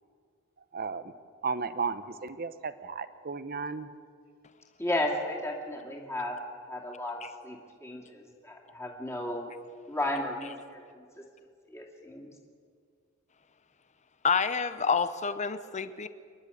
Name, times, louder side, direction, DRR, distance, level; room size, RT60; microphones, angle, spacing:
voice 1, 0.7-1.1 1.4-3.9, right 5 dB, 45° right, 12 dB, 0.9 m, -34 dB
voice 2, 4.8-6.4 6.6-9.5 9.9-11.0 11.7-12.3, left 1 dB, 15° left, -2 dB, 2.6 m, -34 dB
voice 3, 14.2-16.1, left 5 dB, 35° left, 13 dB, 0.8 m, -28 dB
28.5 x 11.0 x 8.5 m, 2.2 s
head